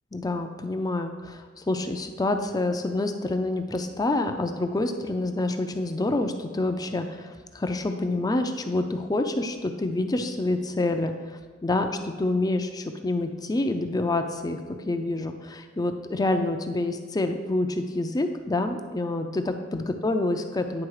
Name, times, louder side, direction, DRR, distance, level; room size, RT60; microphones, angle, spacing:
voice 1, 0.1-14.6 14.9-20.9, left 2 dB, 20° left, 6 dB, 0.4 m, -27 dB
9.8 x 3.9 x 4.8 m, 1.5 s
head